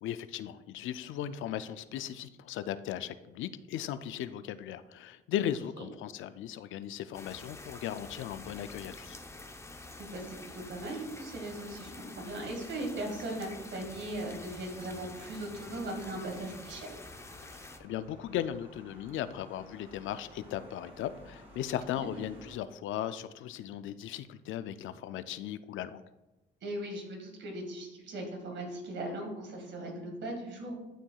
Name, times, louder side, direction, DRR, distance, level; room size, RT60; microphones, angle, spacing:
voice 1, 0.0-9.2 17.4-26.0, left 10 dB, 80° left, 13 dB, 0.4 m, -37 dB
sound 1, 7.1-17.8, left 2 dB, 15° left, 0.7 m, -47 dB
voice 2, 10.0-16.9 22.0-22.1 26.6-30.7, right 1 dB, 65° right, 2 dB, 2.0 m, -39 dB
sound 2, 13.8-22.6, equal, 30° right, 2.4 m, -55 dB
11.5 x 4.6 x 2.3 m, 1.0 s
cardioid pair, 90°, 20 cm